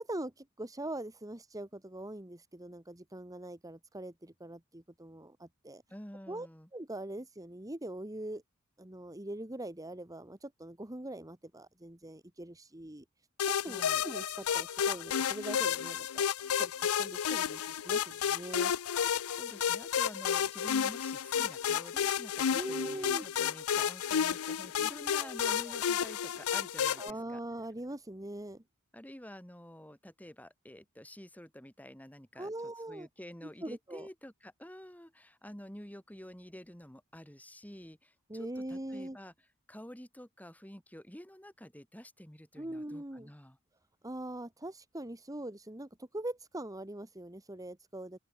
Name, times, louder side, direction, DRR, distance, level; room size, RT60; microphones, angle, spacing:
voice 1, 0.0-5.8 6.3-6.5 6.7-8.4 8.8-13.0 13.5-16.2 16.5-18.7 22.5-23.2 25.2-25.8 27.0-28.6 32.4-33.1 33.4-34.1 38.3-39.2 42.5-43.3 44.0-48.2, right 1 dB, 15° right, 1.7 m, -42 dB
voice 2, 5.9-6.7 13.6-14.0 19.3-27.4 28.9-39.3 39.7-43.6, equal, 5° left, 3.0 m, -49 dB
sound 1, 13.4-27.1, left 8 dB, 75° left, 0.5 m, -32 dB
open air
head